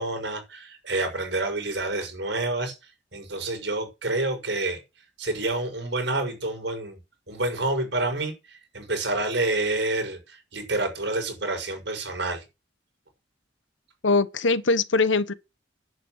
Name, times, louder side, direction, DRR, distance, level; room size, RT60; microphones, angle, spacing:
voice 1, 0.0-2.7 3.1-4.8 5.2-7.0 7.3-12.4, right 2 dB, 65° right, 6.5 m, -28 dB
voice 2, 14.0-15.3, left 3 dB, 85° left, 1.2 m, -22 dB
10.5 x 9.2 x 6.5 m
head